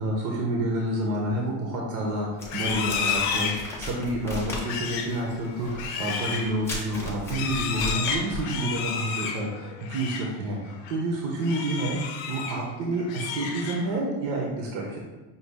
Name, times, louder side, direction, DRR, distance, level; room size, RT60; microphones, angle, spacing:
voice 1, 0.0-12.0 12.3-15.0, right 1 dB, 50° right, -1 dB, 0.7 m, -29 dB
Livestock farm animals working animals, 2.4-10.3 10.7-11.0 11.4-12.7 13.0-14.0, left 6 dB, 60° left, 0.6 m, -32 dB
sound 1, 2.4-8.5, left 2 dB, 5° left, 0.4 m, -36 dB
5.3 x 2.2 x 3.3 m, 1.2 s
cardioid pair, 165°, 42 cm